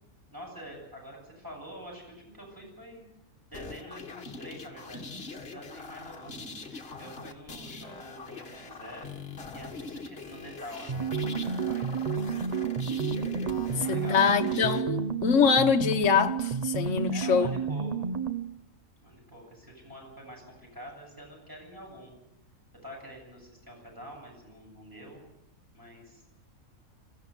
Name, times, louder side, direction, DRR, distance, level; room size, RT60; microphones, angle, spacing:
voice 1, 0.3-3.0 3.5-9.2 9.5-12.4 13.6-14.6 17.1-18.1 19.0-22.1 22.8-25.3 25.7-26.3, equal, 15° right, 7.8 m, -46 dB
sound 1, 3.5-14.8, left 4 dB, 45° left, 1.7 m, -43 dB
sound 2, 10.9-18.5, right 6 dB, 35° right, 0.7 m, -30 dB
voice 2, 13.9-17.5, left 6 dB, 60° left, 1.4 m, -24 dB
21.5 x 15.5 x 8.1 m
omnidirectional pair, 1.5 m